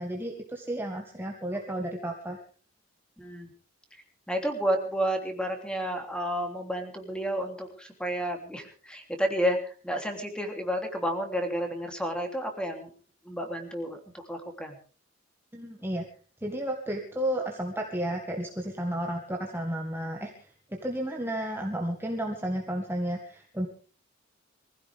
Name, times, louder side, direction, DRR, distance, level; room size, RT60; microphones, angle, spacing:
voice 1, 0.0-2.4 15.5-16.0 16.4-20.3 20.8-23.7, right 1 dB, 10° right, 1 dB, 1.8 m, -32 dB
voice 2, 3.2-3.5 4.3-12.9 13.2-14.0 14.3-14.7, equal, 5° left, 4 dB, 3.2 m, -31 dB
24.0 x 16.0 x 3.6 m, 0.39 s
head